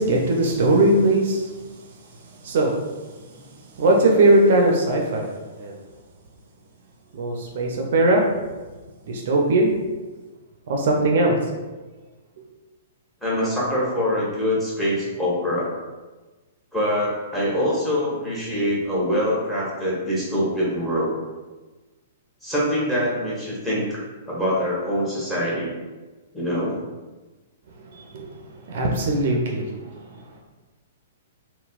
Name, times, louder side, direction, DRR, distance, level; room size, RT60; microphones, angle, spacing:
voice 1, 0.0-1.5 2.4-2.7 3.8-5.3 5.6-5.7 7.1-8.2 9.1-9.7 10.7-11.4 28.1-28.3 28.7-29.7, right 2 dB, 55° right, 0 dB, 0.5 m, -19 dB
voice 2, 13.2-15.7 16.7-21.1 22.4-24.0 24.3-25.7 26.3-26.7, equal, 10° left, -7 dB, 1.1 m, -24 dB
3.9 x 2.1 x 2.4 m, 1.2 s
figure-of-eight pair, 110°, 0 cm